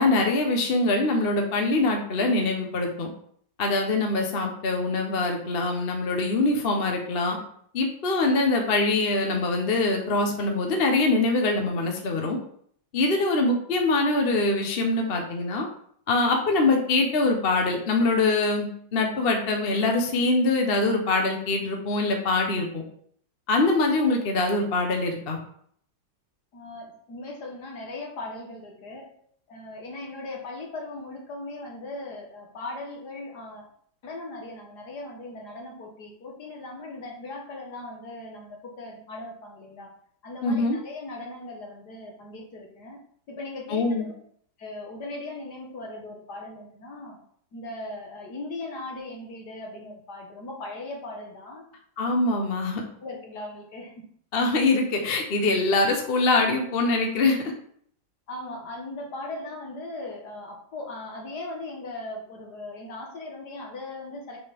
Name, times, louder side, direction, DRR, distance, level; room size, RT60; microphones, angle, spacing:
voice 1, 0.0-3.1 3.6-7.4 7.7-12.4 12.9-15.7 16.1-22.8 23.5-25.4 40.4-40.8 43.7-44.1 52.0-52.8 54.3-57.5, left 2 dB, 40° left, 2 dB, 1.0 m, -23 dB
voice 2, 26.5-29.1 29.5-33.7 34.0-39.9 40.2-43.0 43.3-44.1 44.6-47.2 47.5-51.6 53.0-54.0 58.3-64.4, left 2 dB, 60° left, 0 dB, 1.9 m, -38 dB
6.7 x 3.9 x 5.2 m, 0.63 s
omnidirectional pair, 2.0 m